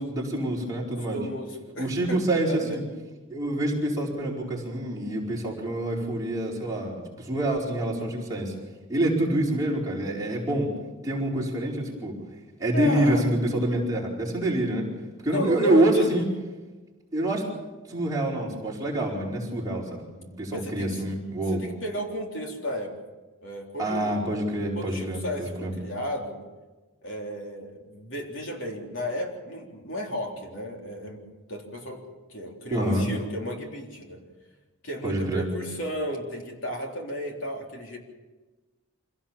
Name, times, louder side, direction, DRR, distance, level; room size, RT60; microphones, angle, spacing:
voice 1, 0.0-1.2 1.8-2.8 3.3-8.5 8.9-10.7 11.0-12.1 12.6-14.9 15.2-16.2 17.1-17.5 17.9-21.6 23.8-25.7 32.7-33.1 35.0-35.4, right 1 dB, 15° right, -5 dB, 4.8 m, -26 dB
voice 2, 1.1-2.2 2.5-2.8 12.7-13.3 15.3-16.3 20.5-20.9 21.5-22.9 23.4-24.2 24.7-26.4 27.0-31.2 31.5-32.0 32.3-34.2 34.8-38.0, equal, 60° left, 1 dB, 3.7 m, -33 dB
26.0 x 17.5 x 7.3 m, 1.2 s
head